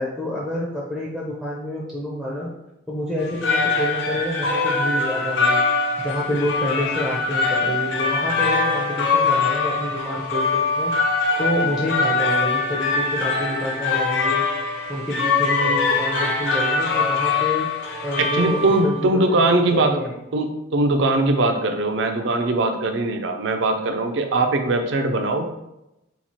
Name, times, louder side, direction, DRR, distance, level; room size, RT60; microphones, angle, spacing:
voice 1, 0.0-2.5 2.9-5.6 6.0-10.9 11.4-14.4 14.9-17.7 18.0-20.1, left 1 dB, ahead, -5 dB, 0.4 m, -28 dB
sound 1, 3.2-19.1, left 4 dB, 55° left, 0.5 m, -22 dB
voice 2, 18.2-20.0 20.3-25.5, right 2 dB, 60° right, 5 dB, 0.4 m, -21 dB
2.9 x 2.3 x 4.2 m, 0.90 s
head